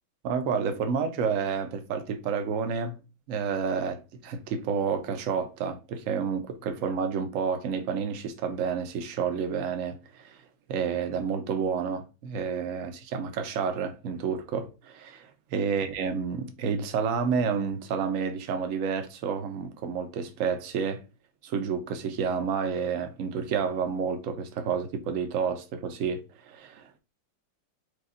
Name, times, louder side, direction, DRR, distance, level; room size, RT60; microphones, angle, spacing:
voice 1, 0.2-3.0 3.3-10.4 10.7-21.0 21.4-27.0, right 6 dB, 60° right, 0.8 m, -30 dB
5.0 x 2.3 x 3.8 m
omnidirectional pair, 2.1 m